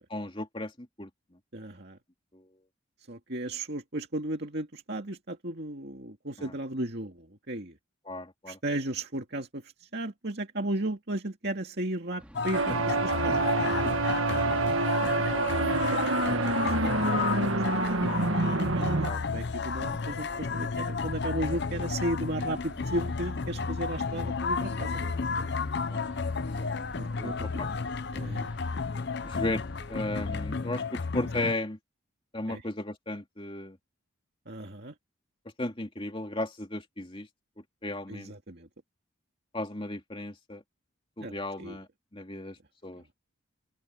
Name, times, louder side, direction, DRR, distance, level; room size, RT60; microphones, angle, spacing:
voice 1, 0.1-1.1 2.3-2.5 6.4-6.5 8.0-8.6 19.0-19.2 25.9-26.9 27.2-27.3 27.6-27.7 29.2-29.6 29.9-31.8 32.3-33.8 35.6-37.3 37.8-38.3 39.5-40.6 41.2-42.6 42.8-43.0, left 2 dB, 25° left, 2.7 m, -35 dB
voice 2, 1.5-2.0 3.1-7.8 8.5-13.9 15.9-25.1 27.0-27.5 28.1-28.5 32.5-32.6 34.5-34.9 38.1-38.7 41.2-41.8, right 1 dB, 50° right, 2.4 m, -35 dB
sound 1, 12.2-30.5, equal, 5° right, 2.5 m, -48 dB
sound 2, 12.3-31.5, left 4 dB, 55° left, 0.7 m, -32 dB
sound 3, 12.5-19.1, right 3 dB, 75° right, 1.6 m, -27 dB
open air
head